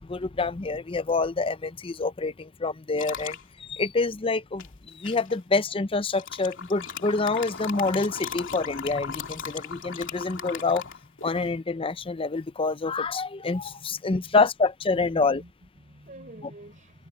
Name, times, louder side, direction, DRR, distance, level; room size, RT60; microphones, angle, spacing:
voice 1, 0.0-10.8 11.2-15.4, left 3 dB, 25° left, 0.5 m, -27 dB
sound 1, 3.0-3.4 4.6-5.4 6.1-11.5, left 7 dB, 55° left, 3.2 m, -37 dB
voice 2, 13.7-14.4 14.9-17.1, right 1 dB, 35° right, 4.8 m, -48 dB
head